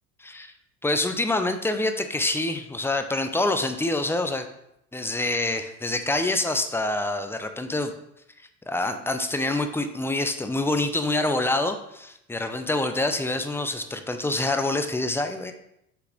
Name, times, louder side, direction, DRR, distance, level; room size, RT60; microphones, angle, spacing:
voice 1, 0.2-0.5 0.8-4.5 4.9-7.9 8.7-15.5, left 2 dB, 5° left, 7 dB, 0.6 m, -26 dB
5.7 x 4.0 x 5.0 m, 0.78 s
hypercardioid pair, 85°, 43 cm